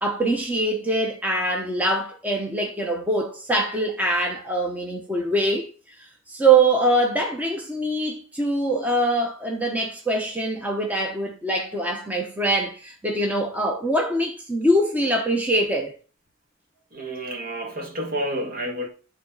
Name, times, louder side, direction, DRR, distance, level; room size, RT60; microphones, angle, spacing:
voice 1, 0.0-15.9, right 2 dB, 10° right, 0.9 m, -23 dB
voice 2, 16.9-18.9, equal, 45° right, 1.8 m, -30 dB
11.5 x 4.1 x 3.9 m
head